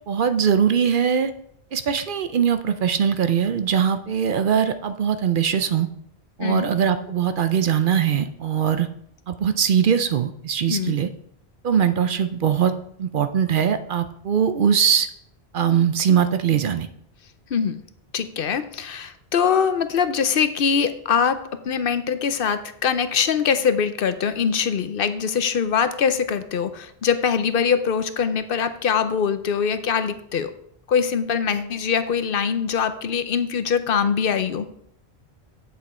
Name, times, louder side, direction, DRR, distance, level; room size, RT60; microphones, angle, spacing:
voice 1, 0.1-1.3 1.7-5.9 6.4-8.9 9.3-11.1 11.6-12.7 13.0-15.1 15.5-16.9, right 8 dB, 60° right, 10 dB, 0.7 m, -21 dB
voice 2, 6.4-6.7 10.7-11.0 17.5-17.8 18.1-21.4 21.7-30.5 30.9-34.7, left 7 dB, 65° left, 11 dB, 0.8 m, -23 dB
8.4 x 7.5 x 4.3 m, 0.70 s
omnidirectional pair, 1.1 m